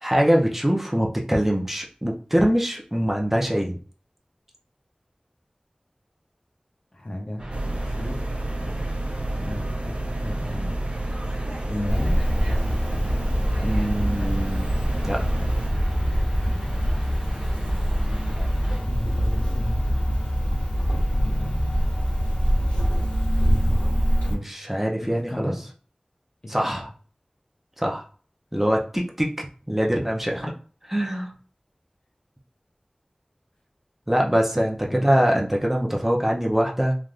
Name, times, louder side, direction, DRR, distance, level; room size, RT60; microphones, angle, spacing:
voice 1, 0.0-3.8 13.6-14.7 15.0-15.2 24.3-25.5 26.5-26.9 27.8-28.0 28.5-30.5 30.9-31.3 34.1-36.9, equal, 10° right, -1 dB, 0.6 m, -23 dB
voice 2, 6.9-8.2 9.4-9.9 10.2-10.7 11.7-12.2 18.8-19.9 21.1-21.5 25.0-25.7 26.4-26.8 34.9-35.1, left 1 dB, 50° left, 1 dB, 0.7 m, -34 dB
sound 1, 7.4-18.8, right 1 dB, 40° right, 1.2 m, -37 dB
sound 2, 7.5-15.7, right 1 dB, 70° right, 0.5 m, -31 dB
Cricket, 11.9-24.3, equal, 75° left, 1.5 m, -24 dB
3.4 x 2.5 x 2.4 m, 0.41 s
wide cardioid pair, 45°, 2 cm